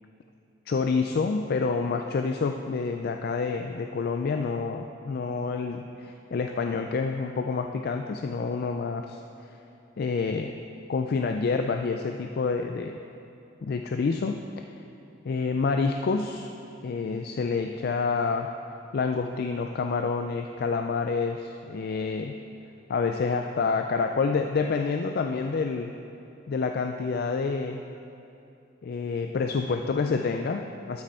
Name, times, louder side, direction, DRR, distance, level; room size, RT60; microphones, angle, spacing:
voice 1, 0.7-9.2 10.0-10.6 10.9-13.0 13.6-14.7 15.2-16.5 16.8-18.5 18.9-22.4 22.9-25.9 26.5-27.8 28.8-31.0, left 4 dB, 55° left, 5 dB, 0.4 m, -28 dB
12.0 x 7.6 x 4.3 m, 2.8 s
head